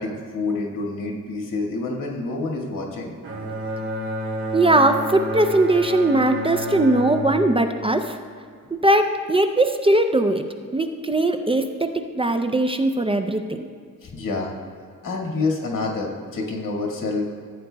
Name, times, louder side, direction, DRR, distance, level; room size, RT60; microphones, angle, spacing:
voice 1, 0.0-3.1 14.0-14.5 15.0-17.2, left 3 dB, 80° left, -1 dB, 1.9 m, -27 dB
Bowed string instrument, 3.2-8.7, equal, 40° right, 2.1 m, -30 dB
voice 2, 4.5-8.2 8.8-10.4 10.7-13.7, right 1 dB, 15° right, 7 dB, 0.4 m, -20 dB
15.5 x 9.0 x 2.2 m, 2.1 s
cardioid pair, 115°, 32 cm